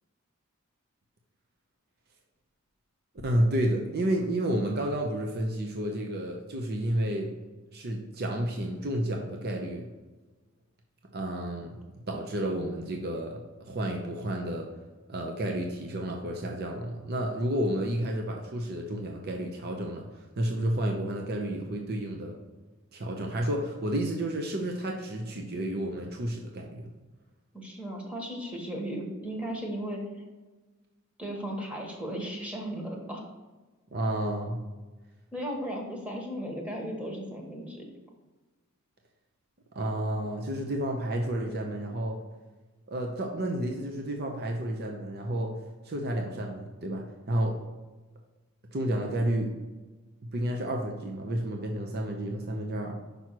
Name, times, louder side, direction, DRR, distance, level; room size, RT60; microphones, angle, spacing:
voice 1, 3.2-7.3 7.7-9.9 11.1-11.8 12.1-14.7 15.1-22.4 22.9-26.9 33.9-34.6 39.7-42.2 42.9-45.5 45.8-47.6 48.7-49.5 50.2-53.0, right 1 dB, 50° right, 2 dB, 0.8 m, -31 dB
voice 2, 27.5-30.2 31.2-33.3 35.3-37.9, equal, 5° right, -1 dB, 1.3 m, -36 dB
6.0 x 5.3 x 4.5 m, 1.2 s
head